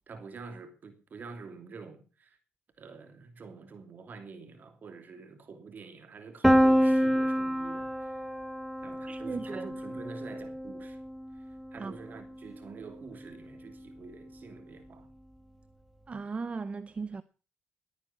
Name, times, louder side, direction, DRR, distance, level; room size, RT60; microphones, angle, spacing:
voice 1, 0.1-2.4 2.8-8.3 8.8-11.0 11.3-11.4 11.7-15.1, right 4 dB, 50° right, 2.8 m, -47 dB
Piano, 6.4-12.2, equal, ahead, 1.5 m, -28 dB
voice 2, 9.1-9.7 11.8-11.9 16.1-17.2, right 4 dB, 30° right, 0.7 m, -37 dB
19.0 x 9.0 x 5.8 m
cardioid pair, 95°, 4 cm